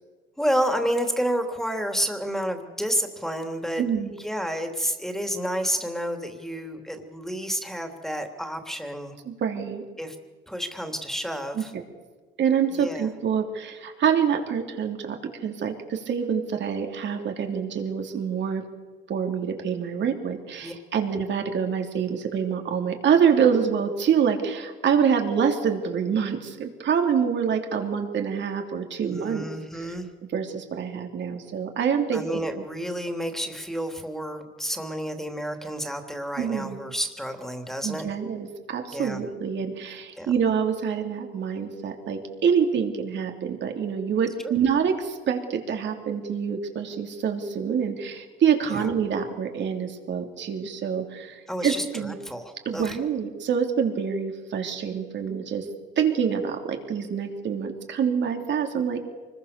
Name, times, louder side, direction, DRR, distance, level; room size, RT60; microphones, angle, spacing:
voice 1, 0.4-3.8 4.1-9.2 10.0-10.1 10.5-11.7 12.7-13.1 20.6-20.7 29.1-30.1 32.1-38.1 38.9-39.2 40.2-40.3 44.4-44.5 48.7-48.9 51.5-53.0, equal, ahead, 5 dB, 3.2 m, -30 dB
voice 2, 3.8-4.1 9.2-9.8 11.5-11.6 12.4-18.6 19.1-29.5 30.3-32.6 36.4-36.8 37.8-52.2 52.6-55.7 56.0-59.0, right 7 dB, 65° right, 4 dB, 3.3 m, -26 dB
25.0 x 21.0 x 6.9 m, 1.4 s
cardioid pair, 90°, 20 cm